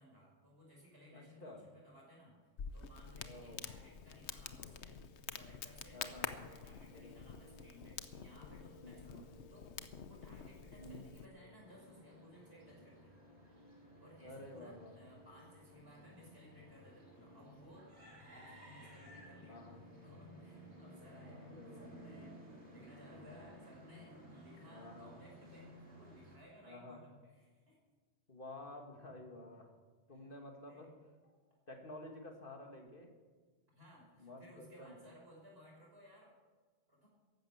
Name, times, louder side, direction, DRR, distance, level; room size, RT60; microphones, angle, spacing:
voice 1, 0.0-5.0 5.3-9.7 10.0-13.1 14.0-17.9 18.2-27.8 29.5-29.6 30.1-30.3 30.7-30.9 31.5-31.6 33.7-36.4 36.9-37.1, equal, 65° right, -3 dB, 6.1 m, -60 dB
voice 2, 1.1-1.6 3.2-3.6 5.9-6.3 6.9-7.2 8.8-9.2 10.8-11.1 14.2-15.0 19.5-19.8 21.4-21.9 22.7-22.8 24.7-25.1 26.6-27.0 28.3-29.7 30.1-30.9 31.7-33.1 34.2-35.0, left 1 dB, 50° left, 3 dB, 2.4 m, -51 dB
Crackle, 2.6-11.3, left 6 dB, 80° left, 1.2 m, -48 dB
sound 1, 5.8-22.7, left 1 dB, 35° left, 1.3 m, -63 dB
sound 2, 11.6-26.4, equal, 80° right, 3.3 m, -57 dB
14.5 x 11.5 x 7.3 m, 1.4 s
omnidirectional pair, 1.1 m